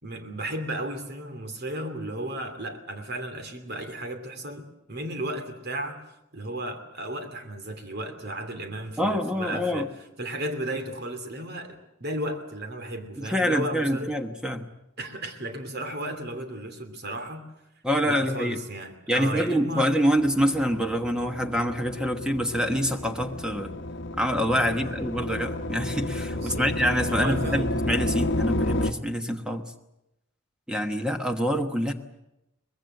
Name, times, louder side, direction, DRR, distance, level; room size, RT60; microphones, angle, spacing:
voice 1, 0.0-6.0 6.3-9.9 10.2-14.1 15.0-17.4 18.0-20.0 24.6-24.9 26.3-26.7 27.1-27.7, right 1 dB, 50° right, 7 dB, 2.8 m, -34 dB
voice 2, 9.0-9.9 13.2-14.6 17.8-18.6 19.1-23.8 24.2-29.6 30.7-31.9, equal, 5° right, 5 dB, 1.2 m, -26 dB
sound 1, 20.2-28.9, left 1 dB, 55° left, 1.1 m, -31 dB
23.5 x 21.5 x 7.8 m, 0.88 s
head